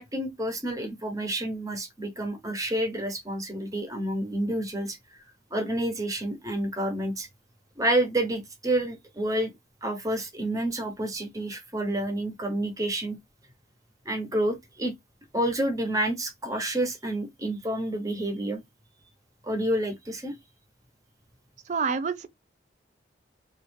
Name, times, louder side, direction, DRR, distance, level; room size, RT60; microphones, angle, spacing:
voice 1, 0.0-5.0 5.5-7.3 7.8-9.5 9.8-13.2 14.0-14.9 15.3-18.6 19.4-20.4, right 1 dB, 20° right, 0.8 m, -29 dB
voice 2, 21.7-22.3, right 5 dB, 40° right, 0.3 m, -27 dB
3.0 x 2.4 x 3.2 m
head